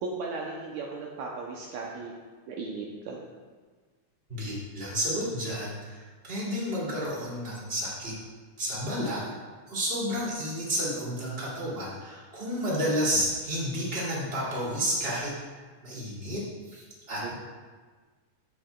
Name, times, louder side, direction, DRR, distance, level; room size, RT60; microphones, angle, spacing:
voice 1, 0.0-2.1 2.5-3.2 17.1-17.3, right 4 dB, 75° right, -2 dB, 2.0 m, -36 dB
voice 2, 4.3-8.1 8.6-9.2 9.7-15.3 15.8-16.4 16.7-17.3, equal, 20° right, -7 dB, 2.4 m, -31 dB
16.0 x 6.4 x 2.3 m, 1.4 s
omnidirectional pair, 3.5 m